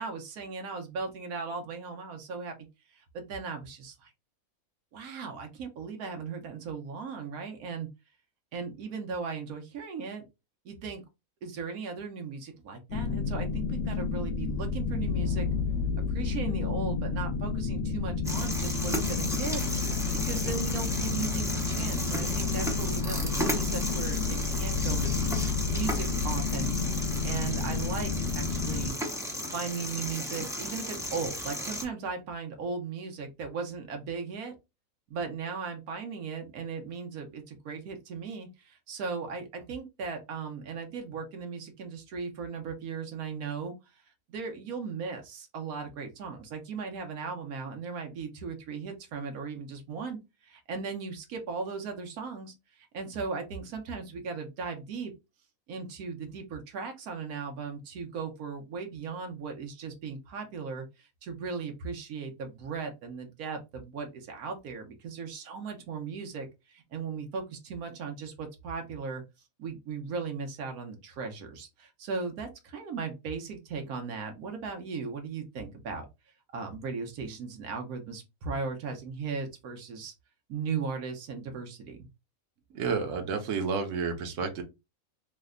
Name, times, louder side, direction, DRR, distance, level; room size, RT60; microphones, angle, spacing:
voice 1, 0.0-2.5 2.9-4.1 4.9-7.9 8.5-10.2 10.6-11.0 11.4-15.5 16.1-19.6 20.1-25.1 25.7-26.7 27.2-29.0 29.5-34.5 35.1-44.0 44.3-55.1 55.7-69.2 69.6-76.1 76.5-80.1 80.5-82.1, right 5 dB, 80° right, 4 dB, 1.2 m, -37 dB
sound 1, 12.9-28.9, left 4 dB, 70° left, 1.1 m, -30 dB
sound 2, 18.2-31.8, equal, 5° right, 0.4 m, -34 dB
voice 2, 82.7-84.6, right 5 dB, 65° right, 4 dB, 1.0 m, -30 dB
3.2 x 2.2 x 3.6 m, 0.25 s
omnidirectional pair, 1.5 m